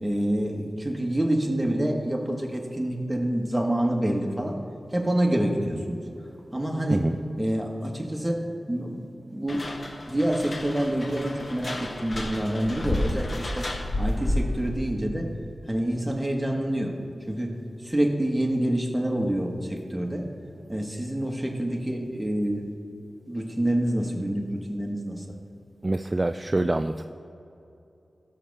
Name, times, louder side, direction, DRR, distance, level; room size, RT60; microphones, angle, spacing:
voice 1, 0.0-4.6 4.9-6.0 6.5-7.0 7.4-8.4 8.7-9.7 10.1-13.7 14.0-15.3 15.7-16.9 17.3-17.5 17.8-20.3 20.7-22.7 23.3-25.2, right 1 dB, 10° right, 0 dB, 1.6 m, -27 dB
sound 1, 9.5-14.7, left 1 dB, 50° left, 1.0 m, -31 dB
voice 2, 25.8-27.0, right 2 dB, 30° right, 8 dB, 0.3 m, -25 dB
16.0 x 6.6 x 3.6 m, 2.8 s
cardioid pair, 55°, 0 cm